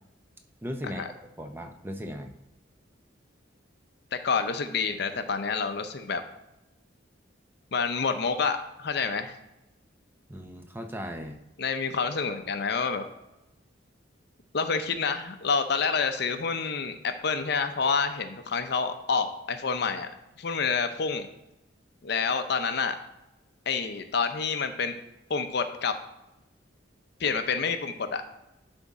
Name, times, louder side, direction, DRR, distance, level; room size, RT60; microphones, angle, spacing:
voice 1, 0.6-1.1 1.4-2.3 10.3-11.4, equal, 10° right, 5 dB, 0.5 m, -37 dB
voice 2, 4.1-6.2 7.7-9.4 11.6-13.0 14.5-20.1 20.4-21.3 22.0-23.0 23.7-24.9 25.3-26.0 27.2-28.2, left 5 dB, 60° left, 8 dB, 0.6 m, -28 dB
11.0 x 3.6 x 4.1 m, 0.93 s
head